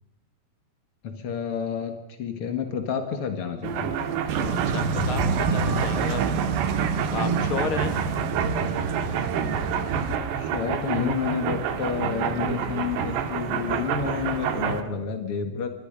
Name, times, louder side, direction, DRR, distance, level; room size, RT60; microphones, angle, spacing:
voice 1, 1.0-3.9 10.3-15.7, left 7 dB, 55° left, 6 dB, 1.6 m, -30 dB
sound 1, 3.6-14.8, right 7 dB, 80° right, 4.1 m, -28 dB
sound 2, 4.3-10.2, right 4 dB, 60° right, 3.2 m, -27 dB
voice 2, 4.5-6.2 7.1-7.9, left 5 dB, 40° left, 8 dB, 2.5 m, -32 dB
29.5 x 25.5 x 5.2 m, 0.93 s
omnidirectional pair, 4.9 m